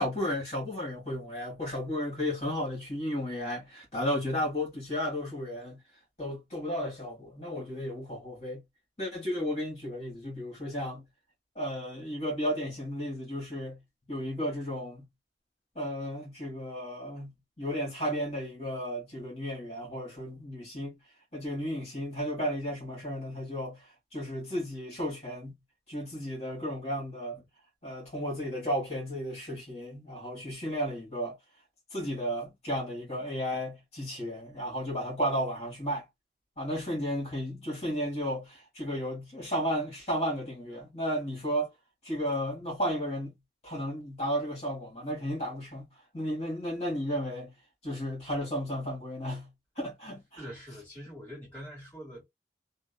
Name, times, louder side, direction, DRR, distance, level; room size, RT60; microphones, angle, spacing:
voice 1, 0.0-5.8 6.2-8.6 9.0-11.0 11.5-13.8 14.1-15.1 15.7-21.0 21.3-25.5 25.9-27.4 27.8-31.4 31.9-36.0 36.6-41.7 42.0-43.3 43.6-45.8 46.1-47.5 47.8-49.5 49.7-50.4, equal, 35° left, 1.6 m, -33 dB
voice 2, 50.3-52.2, equal, 10° left, 1.8 m, -44 dB
2.9 x 2.3 x 2.2 m
head